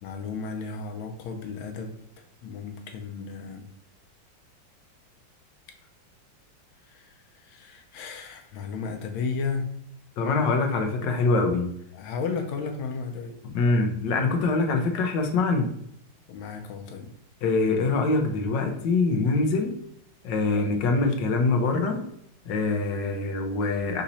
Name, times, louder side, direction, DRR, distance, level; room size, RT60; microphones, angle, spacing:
voice 1, 0.0-1.9 2.4-3.7 6.8-9.7 11.9-13.4 16.3-17.1, left 5 dB, 90° left, 4 dB, 1.4 m, -34 dB
voice 2, 10.2-11.7 13.5-15.7 17.4-19.7 20.2-22.0 22.5-24.0, left 3 dB, 70° left, 4 dB, 1.3 m, -24 dB
4.1 x 2.9 x 4.0 m, 0.72 s
omnidirectional pair, 2.2 m